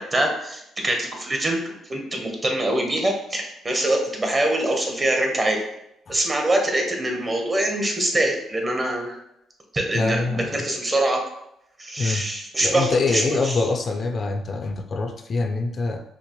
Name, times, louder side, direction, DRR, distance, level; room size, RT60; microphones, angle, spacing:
voice 1, 0.0-5.6 6.1-9.2 9.7-11.2 11.8-13.6, right 1 dB, 25° right, 2 dB, 0.9 m, -24 dB
voice 2, 9.9-10.6 12.0-12.3 12.6-16.0, left 3 dB, 45° left, 5 dB, 0.4 m, -25 dB
5.7 x 2.0 x 3.0 m, 0.81 s
cardioid pair, 90°, 0 cm